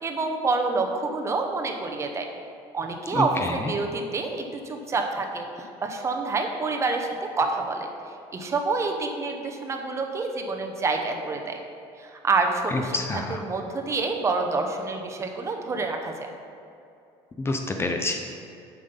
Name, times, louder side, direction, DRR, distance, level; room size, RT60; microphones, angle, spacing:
voice 1, 0.0-2.3 2.7-7.9 8.3-11.6 12.0-16.3, right 3 dB, 25° right, 3 dB, 0.8 m, -27 dB
voice 2, 3.1-3.7 12.7-13.4 17.4-18.2, left 2 dB, 20° left, 4 dB, 0.6 m, -28 dB
7.4 x 5.6 x 5.3 m, 2.6 s
cardioid pair, 135°, 12 cm